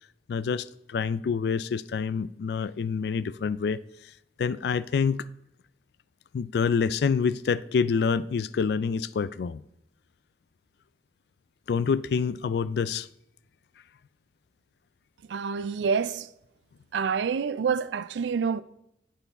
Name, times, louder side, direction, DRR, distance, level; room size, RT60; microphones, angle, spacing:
voice 1, 0.3-3.8 4.4-5.2 6.3-9.6 11.7-13.1, left 5 dB, 70° left, 0.3 m, -27 dB
voice 2, 15.3-16.3 16.9-18.6, right 6 dB, 85° right, 0.4 m, -27 dB
8.2 x 5.7 x 4.2 m
head